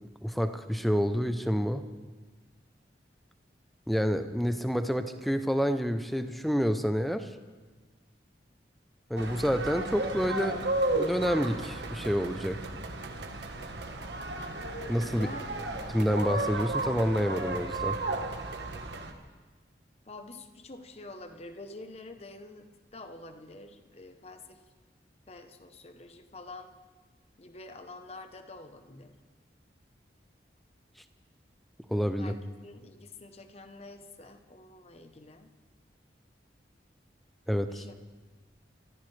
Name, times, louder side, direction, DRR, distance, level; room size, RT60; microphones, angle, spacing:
voice 1, 0.2-1.9 3.9-7.3 9.1-10.7 10.9-12.6 14.9-15.3 15.9-18.0 31.9-32.3 37.5-37.8, equal, ahead, 9 dB, 0.6 m, -28 dB
sound 1, 9.2-19.1, right 2 dB, 80° right, 1.4 m, -34 dB
voice 2, 15.1-15.7 20.1-24.6 25.3-26.7 27.4-29.1 32.2-35.5 37.7-38.0, left 2 dB, 35° left, 7 dB, 0.9 m, -47 dB
26.0 x 14.5 x 3.3 m, 1.4 s
head